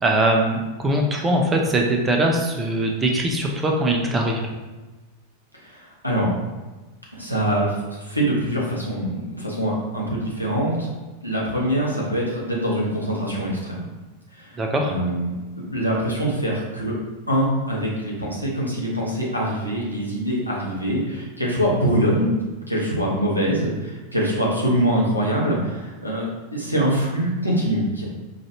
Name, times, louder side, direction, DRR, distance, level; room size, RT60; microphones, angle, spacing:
voice 1, 0.0-4.5 14.6-14.9, right 1 dB, 15° right, 1 dB, 0.6 m, -21 dB
voice 2, 5.6-6.3 7.2-10.9 11.2-13.9 14.3-14.5 14.8-17.0 17.3-22.3 22.7-28.0, right 1 dB, 90° left, -5 dB, 1.0 m, -24 dB
4.9 x 2.5 x 2.8 m, 1.2 s
figure-of-eight pair, 90°, 0 cm